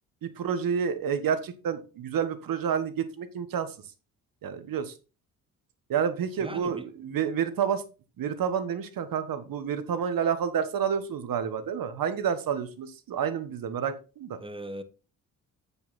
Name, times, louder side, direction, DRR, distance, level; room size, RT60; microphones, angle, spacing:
voice 1, 0.2-3.7 4.4-4.9 5.9-7.8 8.2-14.4, right 7 dB, 60° right, 1.4 m, -29 dB
voice 2, 6.4-6.9 14.4-14.8, right 1 dB, 15° right, 1.1 m, -38 dB
8.0 x 5.7 x 4.1 m
supercardioid pair, 70°, 38 cm